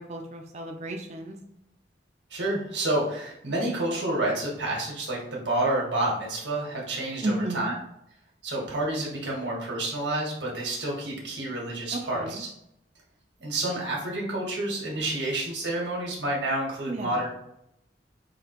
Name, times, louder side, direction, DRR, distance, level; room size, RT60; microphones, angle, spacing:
voice 1, 0.0-1.4 7.2-7.8 11.9-12.4 16.9-17.2, right 1 dB, 40° right, 3 dB, 0.4 m, -33 dB
voice 2, 2.3-7.7 8.4-12.5 13.4-17.3, right 1 dB, 85° right, -2 dB, 1.4 m, -29 dB
5.0 x 2.8 x 3.0 m, 0.78 s
head